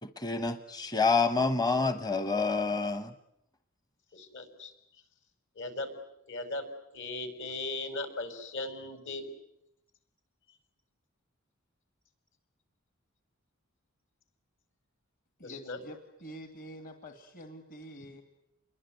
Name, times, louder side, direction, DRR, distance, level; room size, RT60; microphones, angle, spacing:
voice 1, 0.0-3.1, left 4 dB, 20° left, 10 dB, 1.0 m, -28 dB
voice 2, 4.1-4.7 5.6-5.9 6.3-6.7 6.9-9.3 15.4-15.8, left 2 dB, 65° left, 9 dB, 5.8 m, -38 dB
voice 3, 15.4-18.2, equal, 45° left, 7 dB, 2.3 m, -47 dB
28.5 x 22.0 x 9.4 m, 0.82 s
head